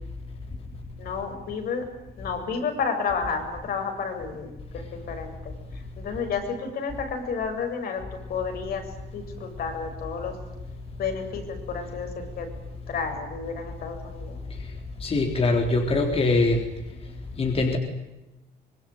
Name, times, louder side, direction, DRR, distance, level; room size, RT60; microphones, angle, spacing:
voice 1, 1.0-1.8 2.2-10.4 11.0-12.1 12.3-12.5 12.9-14.4, left 5 dB, 60° left, 4 dB, 7.9 m, -31 dB
voice 2, 15.0-16.6 17.4-17.8, left 2 dB, 35° left, 3 dB, 3.9 m, -22 dB
25.5 x 21.5 x 9.6 m, 1.0 s
cardioid pair, 110°, 17 cm